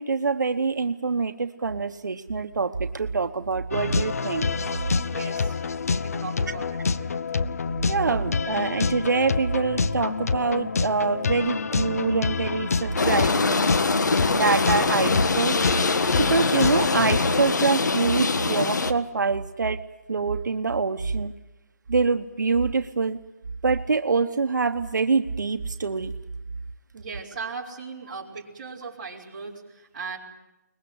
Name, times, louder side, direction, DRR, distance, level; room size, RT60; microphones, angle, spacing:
voice 1, 0.0-4.5 7.9-13.7 14.3-15.5 16.2-19.8 20.1-21.3 21.9-23.2 23.6-26.1, right 4 dB, 85° right, 8 dB, 1.0 m, -25 dB
sound 1, 3.7-17.5, left 4 dB, 55° left, 0.7 m, -27 dB
voice 2, 5.0-7.1 26.9-30.2, right 4 dB, 30° right, -5 dB, 4.1 m, -38 dB
sound 2, 13.0-18.9, left 4 dB, 75° left, 1.4 m, -23 dB
23.0 x 20.5 x 7.9 m, 0.96 s
hypercardioid pair, 175°, 10 cm